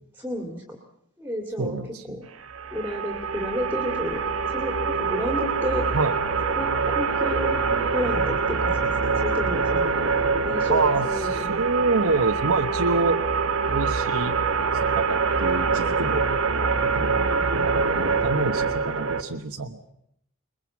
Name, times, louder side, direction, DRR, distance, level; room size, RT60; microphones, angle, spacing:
voice 1, 0.2-0.6 1.2-1.8 2.1-2.2 2.7-4.2 4.5-5.9 6.6-9.9 10.4-11.6 12.0-12.1 17.1-17.5, equal, 10° right, 2 dB, 2.3 m, -31 dB
voice 2, 1.6-2.2 5.9-6.2 10.7-13.2 13.7-14.4 14.8-16.2 16.9-17.2 17.5-19.9, right 3 dB, 85° right, 4 dB, 1.2 m, -27 dB
sound 1, 2.4-19.2, right 4 dB, 70° right, 1.3 m, -25 dB
21.5 x 21.5 x 7.3 m, 0.75 s
head